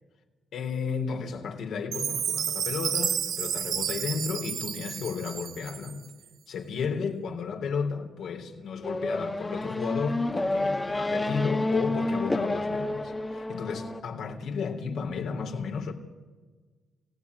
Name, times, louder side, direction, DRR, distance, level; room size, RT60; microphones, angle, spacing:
voice 1, 0.5-6.0 6.5-15.9, left 5 dB, 70° left, 3.5 m, -33 dB
Chime, 1.9-6.1, right 8 dB, 65° right, 0.7 m, -31 dB
Race car auto racing / Accelerating revving vroom, 8.8-14.0, left 2 dB, 15° left, 1.6 m, -29 dB
29.0 x 16.5 x 9.7 m
cardioid pair, 90°, 0 cm